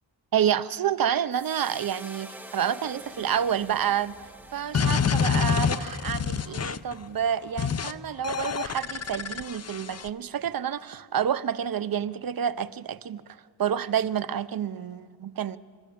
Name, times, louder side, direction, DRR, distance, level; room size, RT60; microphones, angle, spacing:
voice 1, 0.3-4.1 4.5-13.2 13.6-15.6, right 9 dB, 50° right, 0.7 m, -28 dB
sound 1, 1.3-7.7, right 1 dB, 5° right, 2.1 m, -47 dB
sound 2, 4.7-6.9 7.6-7.9 8.2-10.1, left 6 dB, 35° left, 0.6 m, -27 dB
27.0 x 14.0 x 8.6 m
wide cardioid pair, 115°, 45 cm